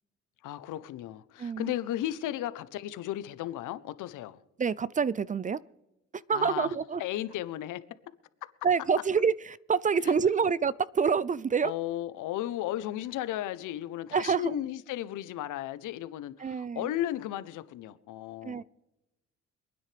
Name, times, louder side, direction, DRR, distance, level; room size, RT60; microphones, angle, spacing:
voice 1, 0.4-4.4 6.3-6.7 7.0-7.8 10.0-10.1 11.6-18.6, left 13 dB, 85° left, 0.8 m, -35 dB
voice 2, 1.4-1.7 4.6-5.6 6.1-7.0 8.6-11.7 14.1-14.6 16.4-16.9 18.4-18.6, right 6 dB, 25° right, 0.4 m, -27 dB
26.0 x 9.7 x 3.4 m
cardioid pair, 90°, 30 cm